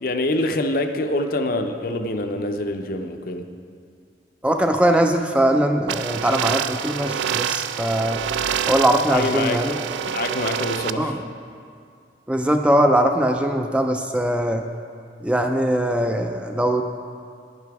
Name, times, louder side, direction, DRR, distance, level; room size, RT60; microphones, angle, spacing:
voice 1, 0.0-3.5 9.1-9.6 10.1-11.2, left 2 dB, 55° left, 6 dB, 0.6 m, -25 dB
voice 2, 4.4-8.2 8.7-9.8 11.0-11.2 12.3-14.7 15.2-16.8, right 1 dB, 5° right, 5 dB, 0.3 m, -21 dB
sound 1, 5.9-10.9, right 8 dB, 85° right, 0.3 m, -27 dB
10.5 x 10.0 x 3.5 m, 2.3 s
head